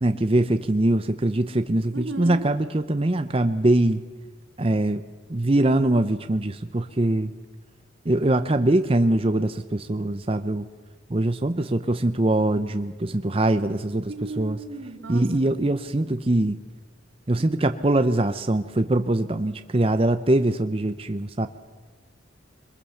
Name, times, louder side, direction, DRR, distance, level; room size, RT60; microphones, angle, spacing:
voice 1, 0.0-4.0 4.6-5.0 5.3-7.3 8.0-10.7 11.1-14.6 15.1-16.6 17.3-21.5, right 1 dB, 30° right, 9 dB, 0.6 m, -23 dB
voice 2, 1.9-2.4 14.1-15.6, right 2 dB, 85° right, 4 dB, 2.7 m, -35 dB
23.0 x 21.0 x 7.1 m, 1.4 s
head